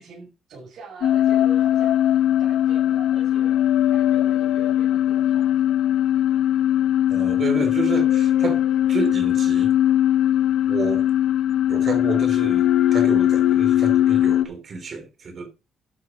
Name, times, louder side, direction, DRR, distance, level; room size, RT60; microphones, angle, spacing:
voice 1, 0.0-3.5 3.9-5.6, right 3 dB, 65° right, 6.3 m, -43 dB
sound 1, 1.0-14.4, left 11 dB, 75° left, 1.0 m, -20 dB
voice 2, 7.1-8.6 8.9-9.7 10.7-11.1 11.7-15.5, right 3 dB, 50° right, 3.2 m, -30 dB
12.0 x 6.5 x 5.1 m
cardioid pair, 90°, 0 cm